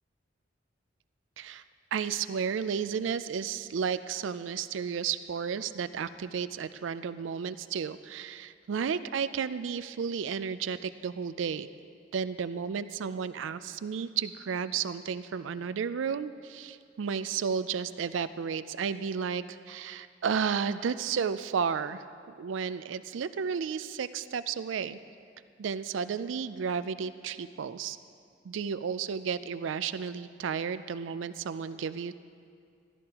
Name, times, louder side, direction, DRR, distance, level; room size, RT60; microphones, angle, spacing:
voice 1, 1.9-11.7 12.1-22.0 22.4-25.0 25.6-28.0 28.4-32.2, right 6 dB, 85° right, 14 dB, 0.4 m, -32 dB
14.0 x 13.0 x 2.9 m, 2.3 s
head